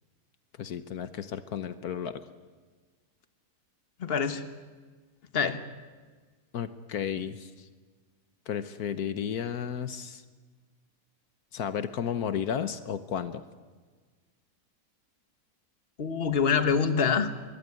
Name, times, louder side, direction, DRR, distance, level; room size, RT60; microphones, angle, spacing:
voice 1, 0.6-2.3 6.5-7.7 8.5-10.2 11.5-13.4, left 8 dB, 75° left, 12 dB, 1.5 m, -33 dB
voice 2, 4.0-4.4 5.3-5.6 16.0-17.3, left 6 dB, 40° left, 10 dB, 1.5 m, -25 dB
24.0 x 21.0 x 9.8 m, 1.4 s
omnidirectional pair, 1.6 m